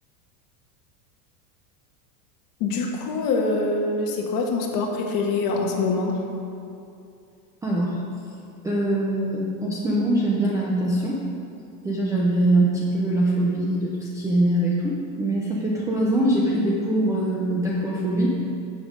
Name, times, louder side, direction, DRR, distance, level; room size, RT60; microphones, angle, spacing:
voice 1, 2.6-6.2, left 3 dB, 45° left, 0 dB, 1.6 m, -24 dB
voice 2, 7.6-8.0 8.6-11.2 11.8-18.4, right 1 dB, 5° right, -5 dB, 0.4 m, -23 dB
9.8 x 7.3 x 5.0 m, 2.6 s
supercardioid pair, 150°, 49 cm